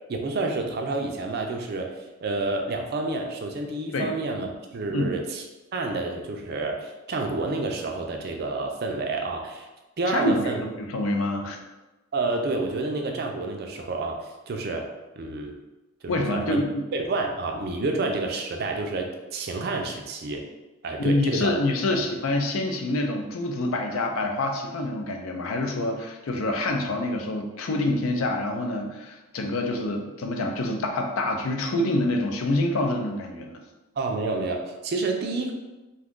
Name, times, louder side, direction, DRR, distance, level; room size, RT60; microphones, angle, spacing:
voice 1, 0.1-5.4 5.7-9.7 10.0-10.6 12.1-14.9 15.2-15.5 16.0-16.6 16.9-20.4 20.8-21.5 34.0-35.5, right 3 dB, 50° right, 3 dB, 0.4 m, -29 dB
voice 2, 10.1-11.6 16.1-16.8 21.0-33.6, left 2 dB, 75° left, 3 dB, 0.4 m, -26 dB
2.6 x 2.4 x 3.6 m, 1.1 s
head